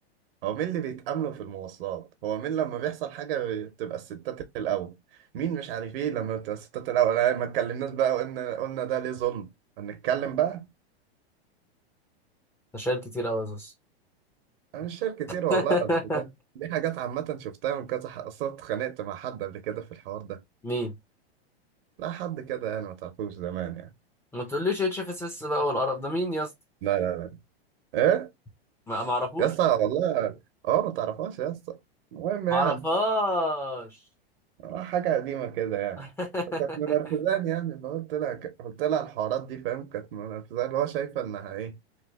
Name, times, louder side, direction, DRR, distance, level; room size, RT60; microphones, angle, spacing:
voice 1, 0.4-4.9 5.3-9.5 9.8-10.6 14.7-15.9 16.1-16.3 16.6-20.4 22.0-23.9 26.8-27.4 27.9-28.3 29.4-30.4 30.6-31.8 32.1-32.8 34.6-36.0 36.6-41.8, right 10 dB, 60° right, 0.9 m, -29 dB
voice 2, 12.7-13.7 15.5-16.2 20.6-21.0 24.3-26.5 28.9-29.5 32.5-34.0 36.0-36.9, left 1 dB, 10° left, 0.5 m, -28 dB
3.2 x 2.3 x 3.4 m
hypercardioid pair, 135°, 32 cm